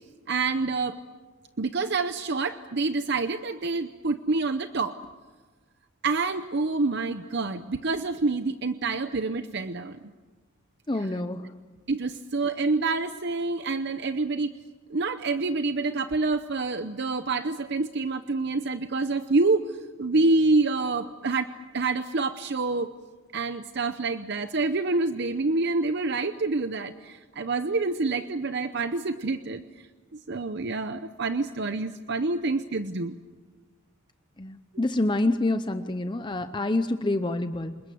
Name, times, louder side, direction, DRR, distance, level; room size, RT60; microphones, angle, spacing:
voice 1, 0.3-1.0 1.6-5.0 6.0-10.0 11.9-14.5 14.9-22.9 23.3-29.9 30.1-33.1, right 3 dB, 55° right, 10 dB, 0.8 m, -27 dB
voice 2, 10.9-11.5 34.4-37.8, left 2 dB, 20° left, 9 dB, 0.7 m, -27 dB
28.0 x 21.0 x 7.8 m, 1.3 s
head